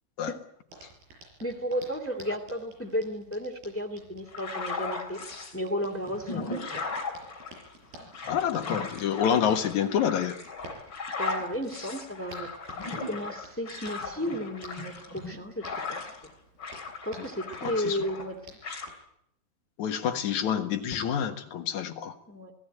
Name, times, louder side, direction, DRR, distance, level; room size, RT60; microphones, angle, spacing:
Hands, 0.7-19.0, right 2 dB, 60° right, 8.2 m, -52 dB
voice 1, 1.4-5.2 5.5-6.8 11.2-12.5 13.0-16.0 17.0-18.4 22.3-22.5, equal, 10° left, 5 dB, 0.5 m, -33 dB
sound 1, 4.3-5.6 6.0-16.3 16.6-18.3 18.6-18.9, left 4 dB, 30° left, 3.7 m, -37 dB
voice 2, 8.3-10.4 17.6-18.0 19.8-22.2, left 8 dB, 55° left, 5 dB, 2.3 m, -28 dB
26.0 x 16.5 x 9.1 m, 0.77 s
omnidirectional pair, 4.9 m